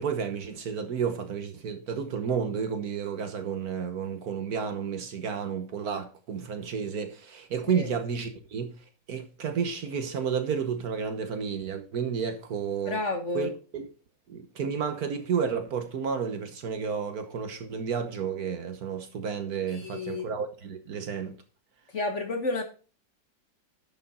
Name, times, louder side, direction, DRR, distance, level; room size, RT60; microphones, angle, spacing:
voice 1, 0.0-8.8 9.1-13.0 13.3-13.9 14.3-21.4, right 6 dB, 60° right, 1.5 m, -31 dB
voice 2, 12.9-13.5 19.7-20.3 21.9-22.6, left 2 dB, 45° left, 1.3 m, -31 dB
10.5 x 6.4 x 4.1 m
omnidirectional pair, 2.0 m